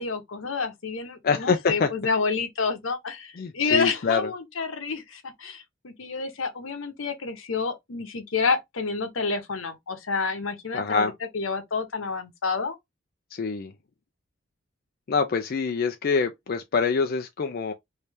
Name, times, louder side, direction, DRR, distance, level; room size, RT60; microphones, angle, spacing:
voice 1, 0.0-12.8, left 4 dB, 80° left, 0.9 m, -29 dB
voice 2, 1.2-1.9 3.4-4.3 10.7-11.1 13.3-13.7 15.1-17.7, left 5 dB, 50° left, 0.4 m, -25 dB
3.2 x 2.7 x 3.3 m
head